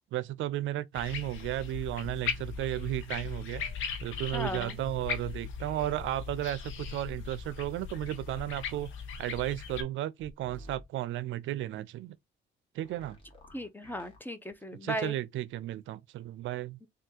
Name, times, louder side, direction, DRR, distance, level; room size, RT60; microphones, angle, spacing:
voice 1, 0.1-3.6 4.0-8.9 9.2-12.2 12.7-13.2 14.8-16.8, right 14 dB, 75° right, 0.4 m, -34 dB
sound 1, 0.9-9.8, left 6 dB, 80° left, 0.8 m, -39 dB
voice 2, 4.3-4.8 13.5-15.2 16.8-16.9, equal, 10° left, 0.6 m, -36 dB
sound 2, 10.2-10.8 12.8-14.2, equal, 25° left, 1.6 m, -51 dB
3.4 x 2.3 x 2.8 m
cardioid pair, 90°, 20 cm